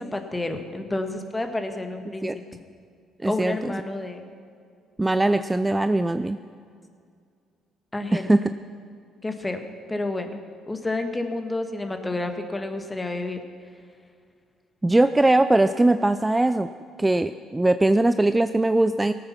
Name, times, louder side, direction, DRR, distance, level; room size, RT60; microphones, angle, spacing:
voice 1, 0.0-2.3 3.2-4.3 7.9-8.3 9.2-9.6 9.9-10.4 10.7-13.4, left 2 dB, 20° left, 6 dB, 1.7 m, -30 dB
voice 2, 3.2-3.7 5.0-6.4 8.1-8.4 14.8-16.7 17.0-19.1, right 2 dB, 15° right, 11 dB, 0.4 m, -20 dB
18.5 x 8.7 x 6.0 m, 2.3 s
hypercardioid pair, 55°, 0 cm